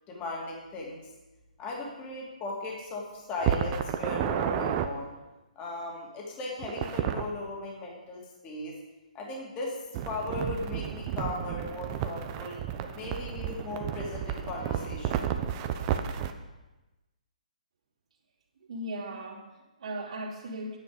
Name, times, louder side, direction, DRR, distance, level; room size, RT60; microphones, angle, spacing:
voice 1, 0.1-1.1 1.6-5.1 5.6-8.8 9.1-9.8 10.0-12.6 12.9-15.3, left 2 dB, 25° left, -2 dB, 2.7 m, -37 dB
sound 1, 3.4-4.9 6.6-7.3 9.9-16.3, right 9 dB, 30° right, 0.8 m, -31 dB
voice 2, 18.7-20.8, right 1 dB, 55° right, -5 dB, 2.9 m, -38 dB
10.5 x 9.7 x 5.2 m, 1.1 s
figure-of-eight pair, 135°, 4 cm